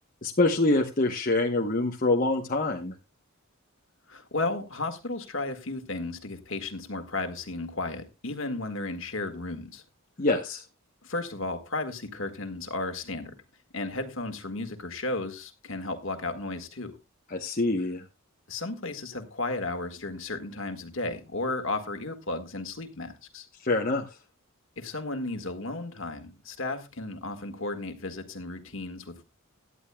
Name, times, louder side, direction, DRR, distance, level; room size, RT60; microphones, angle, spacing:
voice 1, 0.2-2.9 10.2-10.6 17.3-18.0 23.6-24.1, left 2 dB, 40° left, 1 dB, 1.0 m, -25 dB
voice 2, 4.1-9.8 11.0-13.4 13.7-17.0 18.5-23.5 24.8-29.2, left 2 dB, 60° left, 7 dB, 1.7 m, -34 dB
17.5 x 11.0 x 2.3 m, 0.26 s
head